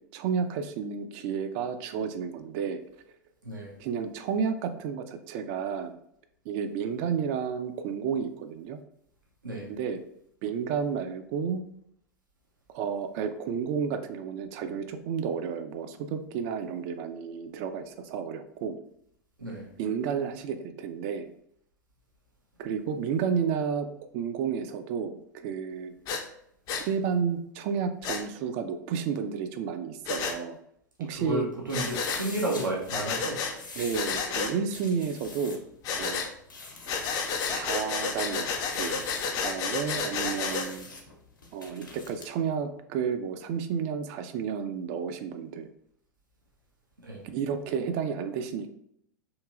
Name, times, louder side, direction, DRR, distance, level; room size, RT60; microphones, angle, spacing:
voice 1, 0.1-2.8 3.8-5.9 6.5-8.8 9.7-10.0 10.4-11.6 12.7-18.8 19.8-21.3 22.6-23.9 24.1-25.9 26.8-30.6 31.0-31.5 33.8-35.6 36.0-36.2 37.5-39.0 39.3-40.9 41.5-45.7 47.2-48.7, right 6 dB, 45° right, 9 dB, 0.4 m, -31 dB
voice 2, 3.4-3.8 9.4-9.7 19.4-19.7 31.1-33.4 47.0-47.2, right 1 dB, 85° right, -3 dB, 0.7 m, -32 dB
Breathing, 26.1-26.2 26.7-26.9 28.0-28.2 30.1-30.4 31.7-32.2 32.9-33.5 33.9-34.5 35.8-36.3 36.9-40.7, left 5 dB, 35° left, 0.4 m, -31 dB
sound 1, 31.7-42.3, left 3 dB, 85° left, 0.7 m, -45 dB
3.0 x 2.9 x 2.3 m, 0.72 s
figure-of-eight pair, 90°, 10 cm